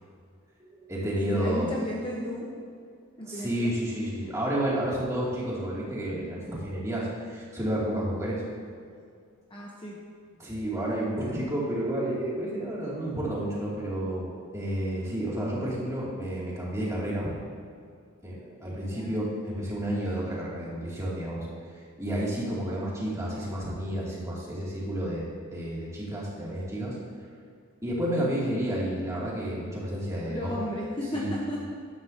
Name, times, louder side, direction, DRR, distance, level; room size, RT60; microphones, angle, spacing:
voice 1, 0.6-1.7 3.3-8.4 10.4-17.3 18.2-21.5 21.7-27.0 27.8-31.3, right 1 dB, 15° right, -7 dB, 2.6 m, -31 dB
voice 2, 1.3-2.5 3.2-3.7 9.5-10.0 18.9-19.3 30.2-31.6, left 1 dB, 25° left, -3 dB, 1.0 m, -34 dB
13.0 x 11.5 x 2.8 m, 2.2 s
head